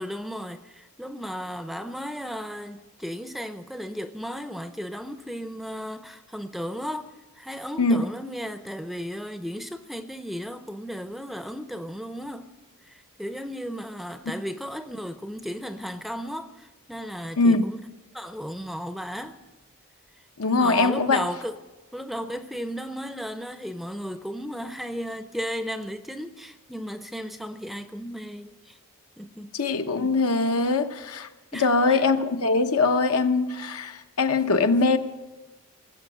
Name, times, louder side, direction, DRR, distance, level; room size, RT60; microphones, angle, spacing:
voice 1, 0.0-12.6 12.9-17.8 18.1-19.4 20.6-21.6 21.9-28.8 29.2-29.5 31.5-32.0, equal, ahead, 0.5 m, -35 dB
voice 2, 17.4-17.7 20.4-21.2 29.5-35.0, left 3 dB, 80° left, 1.0 m, -22 dB
19.0 x 7.9 x 8.8 m
head